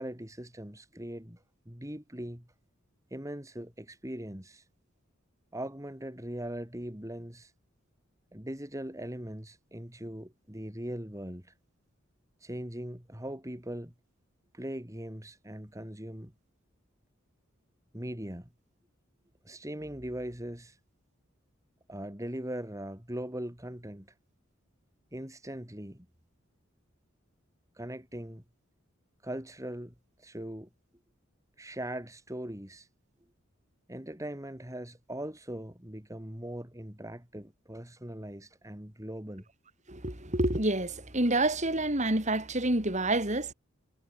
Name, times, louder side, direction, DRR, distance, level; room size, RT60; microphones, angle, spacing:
voice 1, 0.0-2.5 3.1-4.6 5.5-7.5 8.3-11.5 12.4-13.9 14.5-16.3 17.9-18.5 19.4-20.8 21.9-24.1 25.1-26.1 27.7-28.4 29.2-30.7 31.6-32.9 33.9-39.4, right 1 dB, 15° right, 3.2 m, -40 dB
voice 2, 39.9-43.5, right 2 dB, 35° right, 4.6 m, -28 dB
head